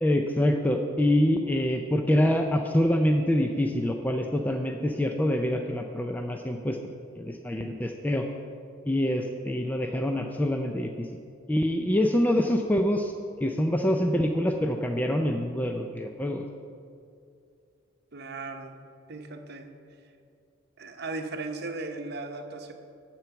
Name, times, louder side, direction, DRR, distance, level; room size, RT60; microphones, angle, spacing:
voice 1, 0.0-6.8 7.2-8.3 8.9-11.1 11.5-13.1 13.4-16.4, left 1 dB, 10° left, 4 dB, 0.4 m, -25 dB
voice 2, 18.1-18.7 19.1-19.7 20.8-22.7, right 3 dB, 50° right, 5 dB, 0.9 m, -37 dB
12.5 x 4.6 x 7.9 m, 2.4 s
head